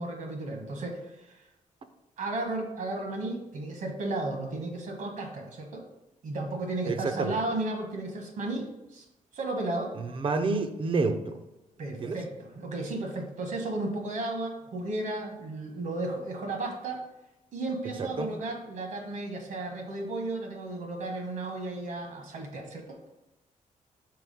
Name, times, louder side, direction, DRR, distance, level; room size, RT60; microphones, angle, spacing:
voice 1, 0.0-1.4 2.2-5.8 6.2-9.0 9.3-9.9 11.8-17.0 17.5-23.0, right 2 dB, 65° right, 2 dB, 1.3 m, -34 dB
voice 2, 6.9-7.4 10.0-11.4 12.0-12.2 18.0-18.3, right 3 dB, 40° right, 9 dB, 0.5 m, -29 dB
4.7 x 4.0 x 5.4 m, 0.95 s
wide cardioid pair, 145°, 14 cm